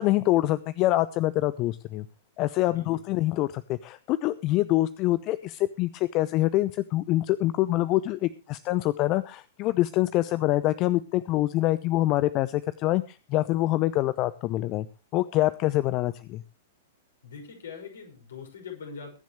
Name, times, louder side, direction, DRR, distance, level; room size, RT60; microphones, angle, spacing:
voice 1, 0.0-2.1 2.4-14.9 15.1-16.4, left 16 dB, 35° left, 17 dB, 0.7 m, -25 dB
voice 2, 2.7-3.0 17.2-19.2, left 6 dB, 65° left, 3 dB, 6.3 m, -42 dB
22.5 x 10.5 x 3.1 m, 0.30 s
figure-of-eight pair, 100°, 0 cm